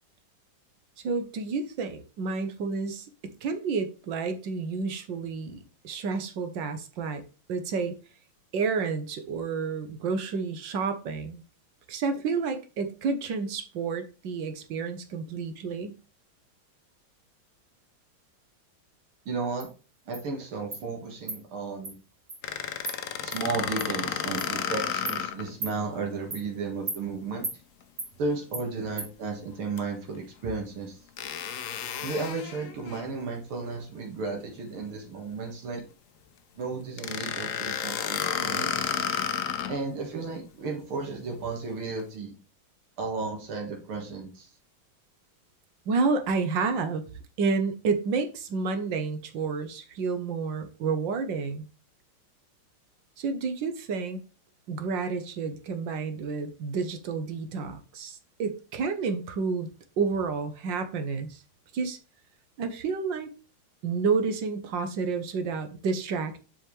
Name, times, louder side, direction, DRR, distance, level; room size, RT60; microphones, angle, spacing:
voice 1, 1.0-7.2 7.5-8.0 8.5-11.4 11.9-16.0 45.9-47.0 47.4-51.7 53.2-54.2 54.7-61.4 61.7-62.0 62.6-63.3 63.8-66.4, right 4 dB, 65° right, 8 dB, 1.6 m, -30 dB
voice 2, 19.3-19.7 20.1-22.0 23.2-27.5 28.2-31.0 32.0-35.8 36.6-38.7 39.7-42.3 43.0-44.5, right 4 dB, 90° right, 1 dB, 2.5 m, -34 dB
Insect, 19.6-19.7 20.1-20.2 20.7-20.8 21.3-21.4 21.8-21.9 22.3-22.4 22.8-23.0 23.3-23.4 23.8-23.9 24.4-24.5 25.1-25.2 25.6-25.7 26.3-26.4 26.9-27.0 27.4-27.6 28.0-28.1 28.5-28.6 29.0-29.1, right 2 dB, 35° right, 2.3 m, -35 dB
sound 1, 22.4-25.5 26.0-26.1 29.8-29.9 31.2-33.1 37.0-39.8, left 8 dB, 85° left, 0.7 m, -31 dB
7.5 x 5.6 x 3.3 m, 0.34 s
omnidirectional pair, 2.3 m